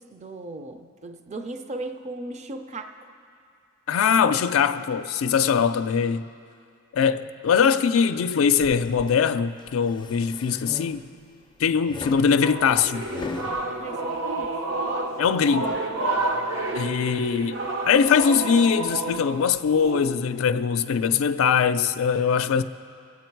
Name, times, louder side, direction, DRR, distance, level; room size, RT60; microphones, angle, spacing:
voice 1, 0.1-2.9 13.8-14.5, right 2 dB, 35° right, 0.5 m, -36 dB
voice 2, 3.9-6.2 6.9-11.0 11.6-13.0 15.2-15.8 16.7-17.6 17.9-22.6, left 6 dB, 90° left, 0.4 m, -22 dB
sound 1, 8.6-9.2 9.7-11.3 11.9-13.6, left 3 dB, 25° left, 0.4 m, -38 dB
sound 2, 12.4-20.1, right 2 dB, 75° right, 1.1 m, -30 dB
23.5 x 8.4 x 4.6 m
head